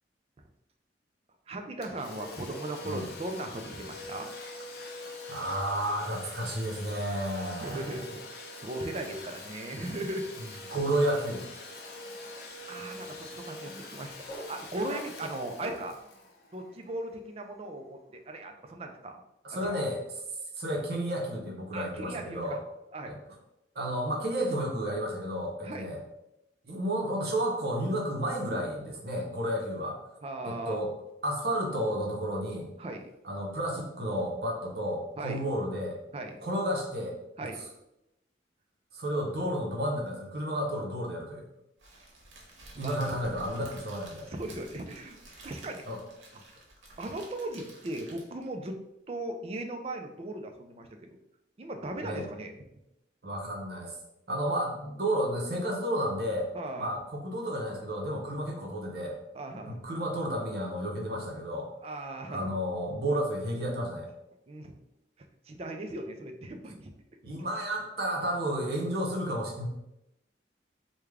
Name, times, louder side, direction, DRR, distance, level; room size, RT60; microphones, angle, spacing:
voice 1, 1.5-4.3 7.6-8.2 8.6-10.3 12.7-14.1 14.5-16.0 16.5-18.0 18.3-19.2 19.6-19.7 21.7-22.6 22.9-23.1 25.6-25.9 30.2-30.8 32.8-33.0 35.2-35.4 36.1-36.3 37.4-37.6 42.7-43.1 44.3-45.2 45.4-45.9 46.3-46.4 47.0-48.8 49.1-51.1 51.6-52.5 56.5-56.9 59.3-59.8 61.8-62.5 64.5-64.7 65.5-66.9, right 1 dB, 30° right, 5 dB, 0.3 m, -37 dB
Domestic sounds home sounds, 1.8-17.3, left 2 dB, 55° left, 0.5 m, -44 dB
voice 2, 5.3-8.0 10.4-11.5 19.4-20.0 20.6-22.6 23.0-23.2 23.7-26.0 26.6-30.0 30.5-30.9 31.2-32.7 33.2-36.0 36.4-37.5 38.9-41.5 42.8-44.3 45.9-46.0 52.0-52.3 53.2-53.9 54.3-56.5 56.8-59.2 59.6-61.7 62.3-64.1 67.2-69.7, equal, 55° right, 0 dB, 0.7 m, -32 dB
sound 1, 10.2-16.0, equal, 15° left, 1.5 m, -48 dB
Crackle, 41.8-48.5, right 2 dB, 90° right, 0.9 m, -51 dB
3.2 x 2.2 x 3.5 m, 0.87 s
head